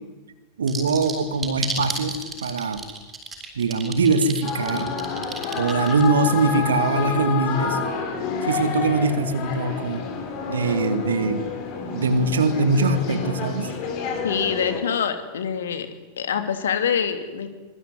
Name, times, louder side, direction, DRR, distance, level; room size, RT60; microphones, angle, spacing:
voice 1, 0.6-2.9 3.5-4.9 5.5-7.8 8.4-10.1 10.5-11.5 11.9-13.7, right 3 dB, 70° right, 9 dB, 2.5 m, -22 dB
sound 1, 0.7-6.2, right 4 dB, 15° right, 7.1 m, -32 dB
sound 2, 4.4-14.8, left 5 dB, 45° left, 7.2 m, -29 dB
voice 2, 14.2-15.9 16.2-17.5, left 7 dB, 65° left, 8 dB, 3.0 m, -25 dB
25.0 x 22.5 x 9.8 m, 1.2 s
figure-of-eight pair, 90°, 0 cm